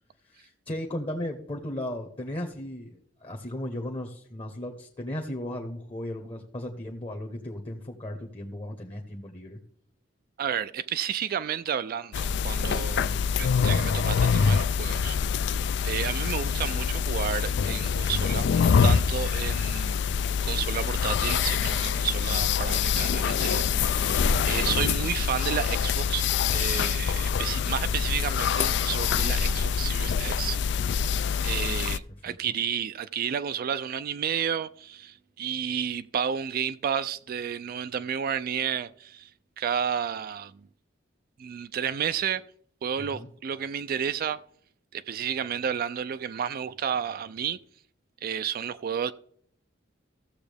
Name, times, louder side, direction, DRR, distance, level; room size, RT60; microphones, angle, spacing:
voice 1, 0.2-9.6 12.9-13.2 22.3-22.4 27.6-28.1 32.3-32.5 43.1-43.3, left 1 dB, 30° left, 1.0 m, -36 dB
voice 2, 10.4-15.2 15.8-20.0 20.4-26.2 26.5-30.6 30.9-39.3 39.6-40.5 41.4-42.4 42.8-44.4 44.9-47.6 48.2-49.1, right 8 dB, 50° right, 0.3 m, -31 dB
sound 1, 12.1-32.0, left 6 dB, 65° left, 0.4 m, -25 dB
15.0 x 7.1 x 3.4 m
head